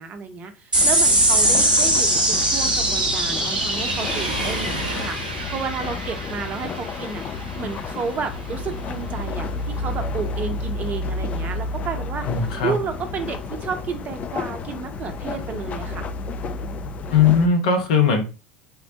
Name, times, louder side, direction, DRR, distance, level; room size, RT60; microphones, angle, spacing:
voice 1, 0.0-7.2 7.6-16.1, right 5 dB, 35° right, 0.6 m, -32 dB
sound 1, 0.7-17.5, left 3 dB, 30° left, 0.3 m, -31 dB
sound 2, 0.7-7.5, right 1 dB, 85° right, 0.6 m, -22 dB
Waves surf, 3.6-5.7, right 1 dB, 85° left, 1.4 m, -32 dB
voice 2, 12.3-12.7 17.1-18.3, left 6 dB, 65° left, 0.8 m, -18 dB
3.7 x 2.1 x 2.7 m
figure-of-eight pair, 70°, 5 cm